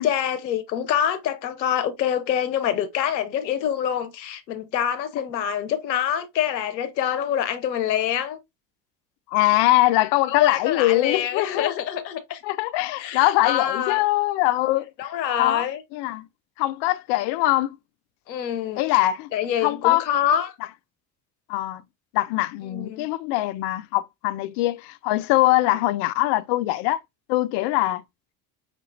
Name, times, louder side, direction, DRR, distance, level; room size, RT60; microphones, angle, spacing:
voice 1, 0.0-8.4 10.3-12.4 13.0-14.0 15.0-15.8 18.3-19.0 19.3-20.5 22.7-23.1, left 9 dB, 85° left, 0.8 m, -26 dB
voice 2, 9.3-11.8 12.4-15.1 15.4-15.7 15.9-16.3 16.6-17.8 18.8-19.3 19.6-20.1 21.5-21.8 22.1-27.0 27.3-28.0, left 17 dB, 55° left, 0.6 m, -22 dB
5.9 x 2.8 x 2.5 m
hypercardioid pair, 65°, 50 cm